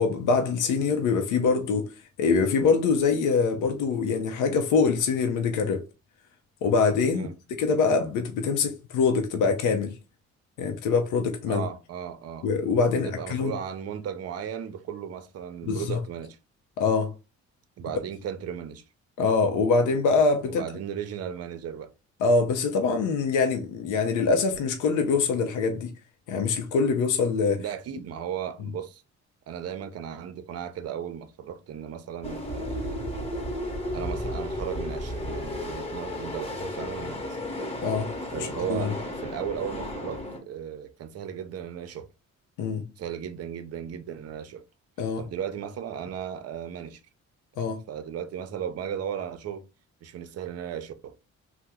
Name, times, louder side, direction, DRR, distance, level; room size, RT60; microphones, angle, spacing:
voice 1, 0.0-1.9 2.2-5.8 6.6-7.3 7.6-9.9 10.6-11.6 12.4-13.6 15.7-16.0 16.8-17.1 19.2-20.6 22.2-25.9 26.3-27.6 37.8-38.9 42.6-42.9 45.0-45.2 47.6-47.8, left 4 dB, 90° left, 0.6 m, -24 dB
voice 2, 11.5-12.5 12.9-16.4 17.8-18.8 20.5-21.9 27.6-29.0 29.5-33.1 33.9-37.4 38.3-42.1 43.0-44.6 45.2-47.0 47.9-49.6 50.0-51.2, right 8 dB, 55° right, 0.6 m, -36 dB
sound 1, 32.2-40.4, left 1 dB, 20° left, 1.0 m, -33 dB
2.9 x 2.1 x 3.4 m
cardioid pair, 90°, 30 cm